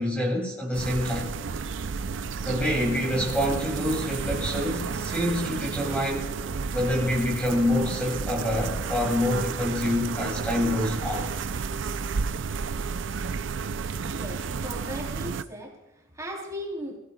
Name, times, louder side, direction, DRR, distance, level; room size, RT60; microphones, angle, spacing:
voice 1, 0.0-1.3 2.4-6.3 6.7-11.3, left 1 dB, 5° left, -2 dB, 2.8 m, -26 dB
sound 1, 0.7-15.4, right 5 dB, 70° right, 0.5 m, -31 dB
voice 2, 14.2-17.0, equal, 15° right, -1 dB, 3.4 m, -37 dB
23.0 x 16.5 x 2.4 m, 0.97 s
head